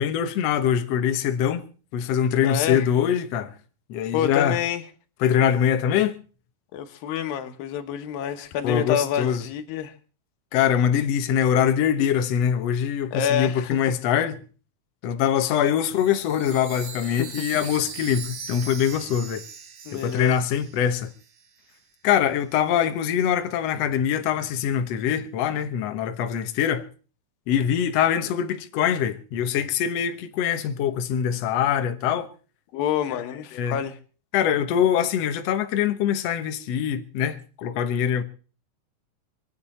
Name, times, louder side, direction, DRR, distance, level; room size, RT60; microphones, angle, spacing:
voice 1, 0.0-1.7 1.9-3.5 3.9-4.6 5.2-6.2 8.6-9.4 10.5-14.4 15.0-19.4 19.9-21.1 22.0-26.9 27.5-32.3 33.1-33.2 33.5-33.8 34.3-38.2, left 9 dB, 65° left, 1.8 m, -23 dB
voice 2, 2.4-2.9 4.1-4.8 6.7-9.9 13.1-13.8 17.2-17.4 19.9-20.3 32.7-34.0, left 9 dB, 80° left, 2.9 m, -27 dB
Chime, 15.9-21.5, right 6 dB, 55° right, 1.6 m, -40 dB
26.0 x 8.8 x 4.3 m
omnidirectional pair, 4.0 m